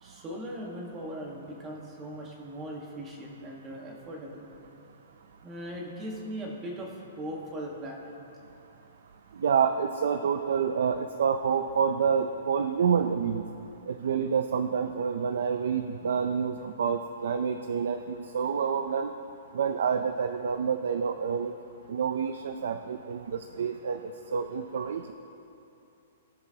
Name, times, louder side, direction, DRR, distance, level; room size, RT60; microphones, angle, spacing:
voice 1, 0.0-4.5 5.4-8.2, equal, 15° right, -1 dB, 1.5 m, -39 dB
voice 2, 9.4-13.4 13.9-19.1 19.5-21.5 21.9-24.0 24.3-25.1, right 6 dB, 70° right, 8 dB, 0.5 m, -28 dB
20.0 x 7.6 x 2.9 m, 2.8 s
hypercardioid pair, 170°, 0 cm